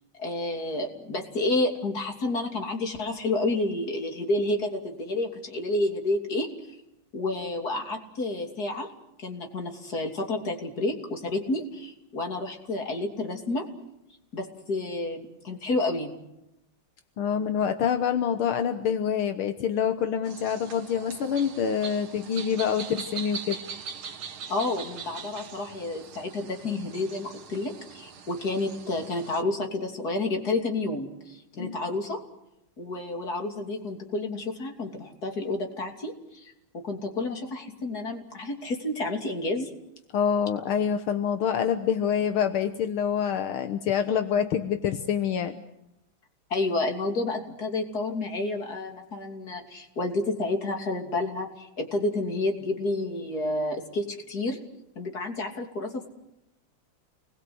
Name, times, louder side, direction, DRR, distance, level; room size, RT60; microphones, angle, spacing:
voice 1, 0.2-6.5 7.1-8.9 9.2-13.7 14.3-16.1 24.5-32.2 32.8-39.7 46.5-54.6 55.0-56.1, left 2 dB, 45° left, 3 dB, 3.5 m, -30 dB
voice 2, 17.2-23.6 31.6-31.7 40.1-45.6, left 8 dB, 80° left, 7 dB, 2.0 m, -26 dB
sound 1, 20.2-29.4, right 6 dB, 80° right, 2.3 m, -41 dB
29.0 x 21.5 x 7.9 m, 0.88 s
omnidirectional pair, 2.3 m